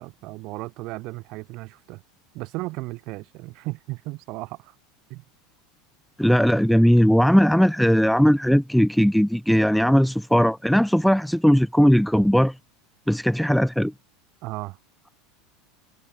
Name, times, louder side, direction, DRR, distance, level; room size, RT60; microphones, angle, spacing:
voice 1, 0.0-2.0 2.3-4.7 5.1-5.2 14.4-14.8, right 22 dB, 40° right, 3.7 m, -35 dB
voice 2, 6.2-12.5 13.1-13.9, equal, ahead, 0.5 m, -18 dB
supercardioid pair, 175°, 0 cm